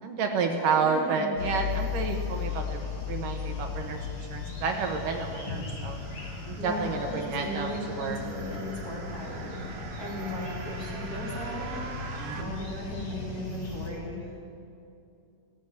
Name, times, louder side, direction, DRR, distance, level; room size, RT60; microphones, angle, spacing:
voice 1, 0.0-6.0 6.4-8.2 10.2-10.5 12.2-12.6, right 5 dB, 70° right, 3 dB, 2.8 m, -30 dB
voice 2, 0.6-1.3 6.6-11.9 12.3-14.4, left 1 dB, 25° left, -5 dB, 4.6 m, -37 dB
sound 1, 1.4-13.9, left 5 dB, 55° left, 6.3 m, -36 dB
sound 2, 4.1-12.4, right 5 dB, 90° right, 3.6 m, -45 dB
16.5 x 16.5 x 9.3 m, 2.8 s
omnidirectional pair, 4.2 m